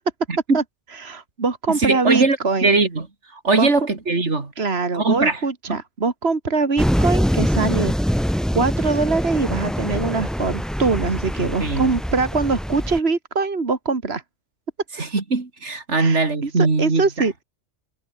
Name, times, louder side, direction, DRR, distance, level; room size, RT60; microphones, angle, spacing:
voice 1, 0.3-0.6 1.7-3.1 3.3-4.5 4.9-5.4 5.7-5.8 11.6-11.9 15.0-17.4, right 3 dB, 80° right, 3.2 m, -21 dB
voice 2, 1.0-2.8 3.5-3.7 4.6-7.9 8.5-14.2 15.9-17.3, right 4 dB, 65° right, 2.5 m, -23 dB
sound 1, 6.8-13.0, equal, ahead, 1.2 m, -23 dB
omnidirectional pair, 1.2 m